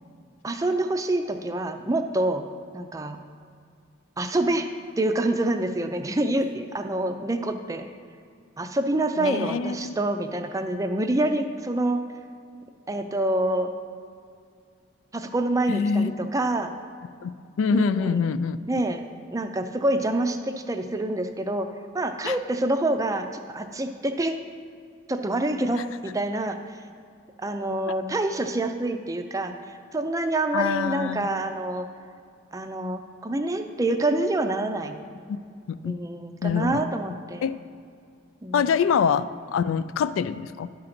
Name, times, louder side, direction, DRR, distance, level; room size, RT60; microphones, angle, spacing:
voice 1, 0.4-2.4 2.7-3.2 4.2-4.7 5.0-7.9 8.6-12.0 12.9-13.7 15.1-16.7 17.7-18.2 18.7-19.0 19.3-21.7 21.9-24.4 25.1-26.8 27.4-31.9 32.5-35.0 35.8-37.5 38.4-38.7, right 1 dB, 15° right, 7 dB, 0.4 m, -26 dB
voice 2, 9.2-9.9 15.7-16.1 17.2-17.3 17.6-18.6 22.2-22.4 27.9-28.0 30.5-31.3 35.3-35.4 35.7-36.0 36.4-36.8 37.4-37.5 38.5-40.7, left 6 dB, 85° left, 14 dB, 0.3 m, -25 dB
11.0 x 3.8 x 5.9 m, 2.2 s
head